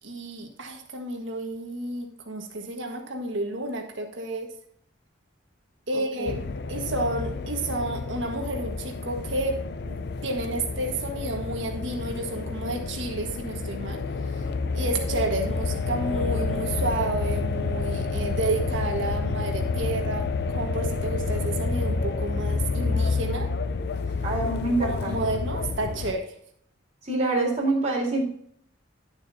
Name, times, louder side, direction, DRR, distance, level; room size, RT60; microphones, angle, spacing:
voice 1, 0.0-4.5 5.9-6.4 6.7-9.6 9.8-14.4 14.7-23.5 24.8-26.3, right 2 dB, 70° right, 2 dB, 1.6 m, -31 dB
voice 2, 5.9-6.3 24.2-25.1 27.0-28.2, right 2 dB, 35° right, -3 dB, 3.6 m, -26 dB
sound 1, 6.3-26.1, left 4 dB, 55° left, 0.5 m, -29 dB
11.0 x 7.0 x 2.8 m, 0.66 s
head